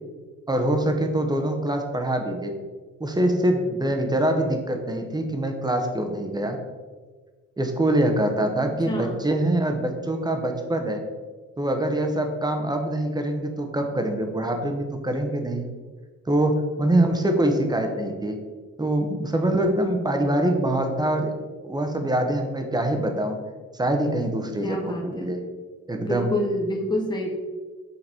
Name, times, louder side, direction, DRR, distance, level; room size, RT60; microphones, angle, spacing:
voice 1, 0.5-2.6 3.0-6.6 7.6-11.0 11.6-15.7 16.3-18.4 18.8-21.3 21.6-23.4 23.7-25.4 25.9-26.3, right 1 dB, 15° right, 5 dB, 1.0 m, -24 dB
voice 2, 8.6-9.2 24.6-25.3 26.0-27.3, left 1 dB, 15° left, -1 dB, 1.3 m, -28 dB
6.8 x 4.1 x 4.3 m, 1.4 s
cardioid pair, 90°, 30 cm